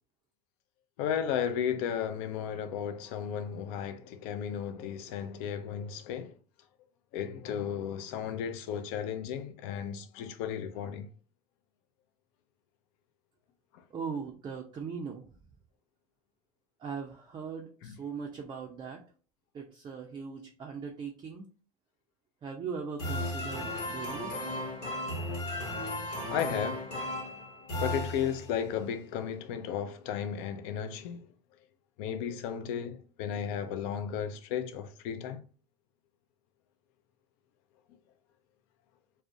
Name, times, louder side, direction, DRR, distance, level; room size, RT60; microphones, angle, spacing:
voice 1, 1.0-6.4 7.1-11.1 13.7-13.8 17.8-18.0 26.3-26.9 27.8-31.3 32.0-35.4, left 8 dB, 55° left, 0.4 m, -34 dB
voice 2, 13.9-15.2 16.8-19.0 19.5-21.5 22.4-24.3, right 6 dB, 25° right, 0.4 m, -39 dB
sound 1, 23.0-28.7, left 1 dB, 80° left, 1.2 m, -35 dB
2.4 x 2.0 x 2.5 m
hypercardioid pair, 80°, 21 cm